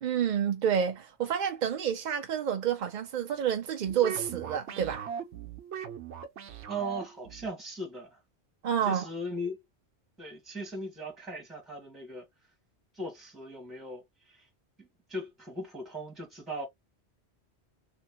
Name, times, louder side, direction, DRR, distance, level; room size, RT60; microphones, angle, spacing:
voice 1, 0.0-5.1 8.6-9.1, right 8 dB, 60° right, 0.5 m, -29 dB
sound 1, 3.9-7.5, right 8 dB, 90° right, 1.0 m, -39 dB
voice 2, 6.7-8.2 8.8-9.6 10.2-12.3 12.9-14.5 14.8-16.7, right 1 dB, ahead, 1.2 m, -38 dB
3.1 x 2.8 x 2.8 m
omnidirectional pair, 1.1 m